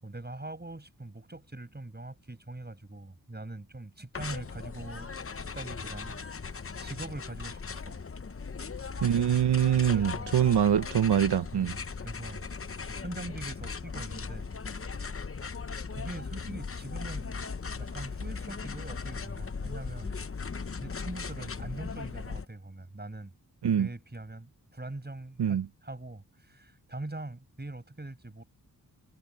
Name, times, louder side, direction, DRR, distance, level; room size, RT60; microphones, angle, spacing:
voice 1, 0.0-5.1 5.4-8.0 9.9-10.4 11.5-14.5 15.5-15.6 16.0-17.3 17.7-20.2 20.8-23.3 23.7-28.4, right 2 dB, 25° right, 6.9 m, -42 dB
sound 1, 4.1-22.5, left 5 dB, 35° left, 0.9 m, -38 dB
voice 2, 9.0-11.8 23.6-23.9 25.4-25.6, right 9 dB, 85° right, 0.9 m, -24 dB
cardioid pair, 60°, 39 cm